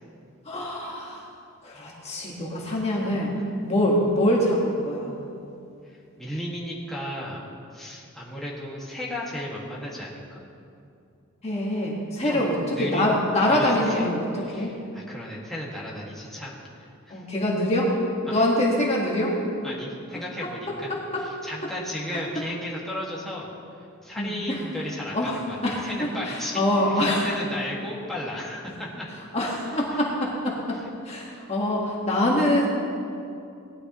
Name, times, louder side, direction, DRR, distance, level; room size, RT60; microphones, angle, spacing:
voice 1, 0.5-1.2 1.6-3.4 3.6-5.1 11.4-14.7 17.1-17.9 18.3-19.4 20.9-21.2 24.2-24.6 25.1-27.3 29.3-30.8 31.0-32.7, left 1 dB, 30° left, -3 dB, 1.7 m, -24 dB
voice 2, 6.2-7.4 7.7-10.4 12.2-12.5 12.7-13.2 13.5-14.1 14.3-16.6 17.1-17.2 18.3-18.5 19.6-23.5 24.0-29.1 29.9-30.0 30.7-30.9, left 1 dB, ahead, -6 dB, 2.0 m, -35 dB
19.0 x 12.0 x 3.1 m, 2.5 s
head